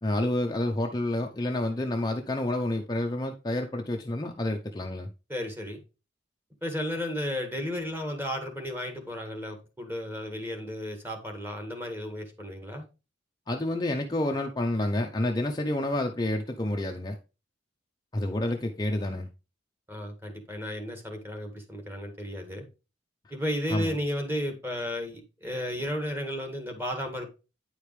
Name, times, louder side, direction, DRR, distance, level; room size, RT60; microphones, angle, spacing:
voice 1, 0.0-5.1 13.5-17.2 18.1-19.3 23.7-23.9, left 1 dB, 20° left, 0.6 m, -29 dB
voice 2, 5.3-5.8 6.6-12.8 19.9-22.6 23.3-27.3, equal, 10° right, 1.7 m, -33 dB
9.6 x 5.0 x 3.2 m
head